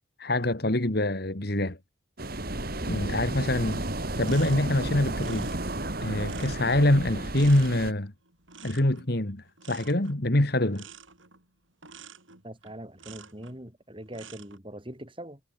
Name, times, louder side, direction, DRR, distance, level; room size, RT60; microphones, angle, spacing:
voice 1, 0.2-1.8 2.8-3.9 4.2-5.5 6.0-8.1 8.6-10.9, left 1 dB, 50° left, 1.9 m, -25 dB
sound 1, 2.2-7.9, right 1 dB, 50° right, 2.8 m, -33 dB
sound 2, 4.2-13.6 14.0-14.6, right 6 dB, 70° right, 7.7 m, -50 dB
voice 2, 12.4-15.4, right 1 dB, 25° right, 4.4 m, -42 dB
head